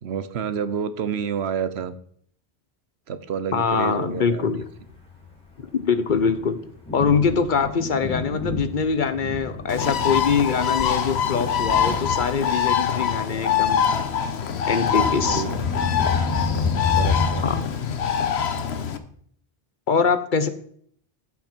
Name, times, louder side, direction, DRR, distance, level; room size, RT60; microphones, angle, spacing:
voice 1, 0.0-1.9 3.1-4.7 15.3-15.8 16.9-18.1, right 7 dB, 90° right, 13 dB, 1.1 m, -30 dB
voice 2, 3.5-4.6 5.7-6.6 6.9-13.8 14.7-15.4 17.4-17.6 19.9-20.5, left 6 dB, 55° left, 11 dB, 0.9 m, -23 dB
Thunder, 3.9-17.6, left 4 dB, 5° left, 3.0 m, -31 dB
Bird, 9.7-19.0, left 8 dB, 85° left, 1.1 m, -24 dB
13.5 x 5.9 x 4.5 m, 0.62 s
omnidirectional pair, 1.1 m